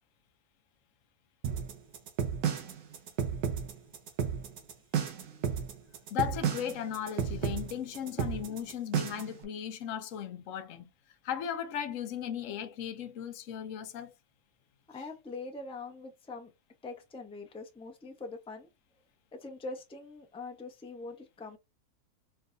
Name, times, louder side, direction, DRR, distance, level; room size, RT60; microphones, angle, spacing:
sound 1, 1.4-9.4, right 7 dB, 85° right, 1.5 m, -32 dB
voice 1, 5.2-5.6 14.9-16.5 16.8-18.7 19.3-21.6, left 3 dB, 5° left, 0.6 m, -43 dB
voice 2, 6.1-10.9 11.2-14.1 14.9-15.1, left 9 dB, 65° left, 0.9 m, -36 dB
4.4 x 3.3 x 2.6 m
omnidirectional pair, 1.6 m